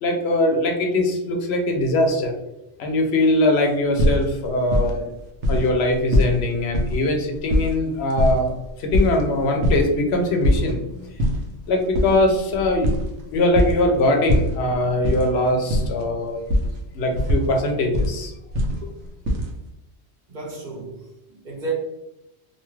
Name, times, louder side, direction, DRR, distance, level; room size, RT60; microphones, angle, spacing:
voice 1, 0.0-2.3 2.8-5.0 5.5-11.1 11.7-12.9 13.3-16.4 16.9-18.3, left 1 dB, 75° left, 0.8 m, -21 dB
sound 1, 4.0-5.1 5.4-5.7 5.9-6.3 6.7-7.0 7.3-9.2 9.6-9.8 10.1-10.7 11.1-11.4 11.9-13.8 14.3-15.2 15.5-16.0 16.5-16.7 17.1-18.1 18.5-19.5, equal, 90° right, 0.9 m, -21 dB
voice 2, 20.3-21.7, right 3 dB, 45° right, 0.8 m, -33 dB
2.6 x 2.3 x 3.0 m
omnidirectional pair, 1.1 m